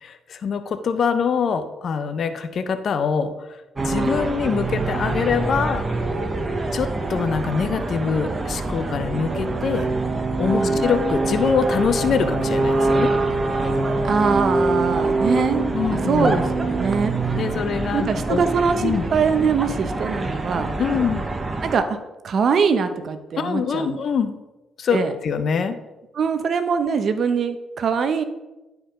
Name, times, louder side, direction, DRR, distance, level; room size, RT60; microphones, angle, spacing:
voice 1, 0.0-3.3 3.8-5.8 6.7-9.9 10.4-13.1 15.7-16.4 17.3-18.4 18.8-19.1 20.8-21.3 23.4-24.3 24.8-25.8, left 6 dB, 55° left, 10 dB, 0.8 m, -24 dB
sound 1, 3.8-21.7, right 2 dB, 25° right, 1.1 m, -24 dB
voice 2, 10.5-10.9 14.0-17.2 17.9-20.7 21.6-22.0 22.2-24.0 24.9-25.1 26.1-28.2, right 5 dB, 55° right, 9 dB, 0.9 m, -22 dB
11.0 x 4.8 x 5.1 m, 1.0 s
cardioid pair, 90°, 0 cm